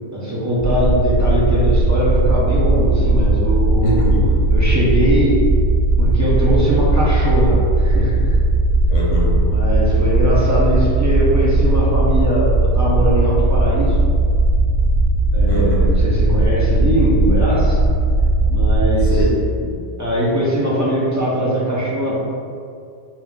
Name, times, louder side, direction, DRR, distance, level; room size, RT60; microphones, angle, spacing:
voice 1, 0.1-4.0 4.5-5.4 6.0-8.3 9.4-14.0 15.3-17.8 18.5-19.2 20.0-22.2, right 1 dB, 30° right, -7 dB, 0.3 m, -20 dB
sound 1, 0.6-19.2, right 2 dB, 40° left, 1.1 m, -17 dB
voice 2, 3.8-4.4 8.9-9.4 15.5-15.9 19.1-19.9, left 2 dB, 80° left, -4 dB, 1.2 m, -24 dB
3.3 x 2.9 x 3.6 m, 2.3 s
omnidirectional pair, 1.3 m